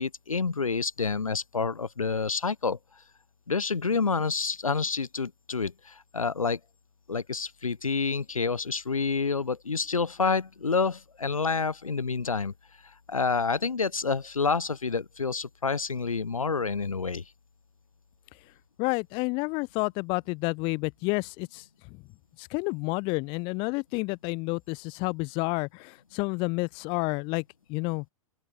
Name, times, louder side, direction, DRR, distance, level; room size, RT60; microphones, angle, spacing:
voice 1, 0.0-2.8 3.5-6.6 7.1-12.5 13.1-17.2, left 4 dB, 85° left, 0.5 m, -28 dB
voice 2, 18.8-21.6 22.4-27.4 27.7-28.0, left 28 dB, 30° left, 0.4 m, -30 dB
open air
figure-of-eight pair, 100°, 17 cm